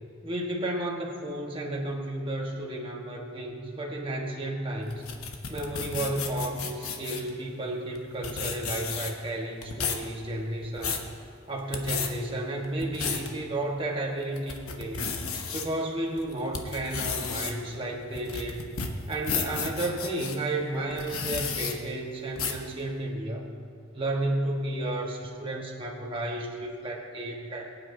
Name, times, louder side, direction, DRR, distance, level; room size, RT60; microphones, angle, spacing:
voice 1, 0.2-5.1 5.5-11.1 11.5-15.1 15.5-18.6 19.1-23.5 23.9-27.7, right 1 dB, 25° right, -1 dB, 1.4 m, -32 dB
sound 1, 4.9-7.3 7.9-9.3 9.6-10.1 10.5-11.1 11.6-12.1 12.6-13.3 13.8-13.9 14.3-15.6 16.2-20.4 20.9-21.7 22.4-22.7, left 6 dB, 80° left, 1.1 m, -32 dB
22.5 x 9.1 x 2.8 m, 2.4 s
head